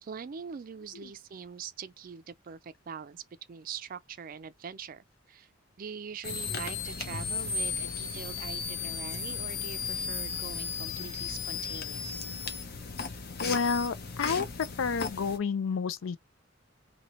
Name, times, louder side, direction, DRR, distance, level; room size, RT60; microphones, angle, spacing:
voice 1, 0.0-3.2 3.5-5.5 5.8-12.3, right 6 dB, 45° right, 0.4 m, -43 dB
sound 1, 6.2-15.4, left 5 dB, 50° left, 0.8 m, -35 dB
voice 2, 13.4-14.5 14.8-16.2, left 5 dB, 80° left, 0.4 m, -29 dB
2.8 x 2.8 x 3.0 m
head